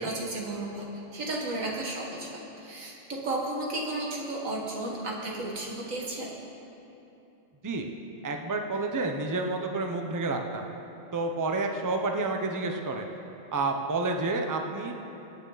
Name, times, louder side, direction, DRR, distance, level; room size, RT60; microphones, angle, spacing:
voice 1, 0.0-6.3, right 2 dB, 85° right, -2 dB, 2.2 m, -33 dB
voice 2, 8.2-10.7 11.1-13.1 13.5-14.9, right 3 dB, 20° right, 3 dB, 0.7 m, -29 dB
22.0 x 9.0 x 4.0 m, 2.9 s
omnidirectional pair, 1.3 m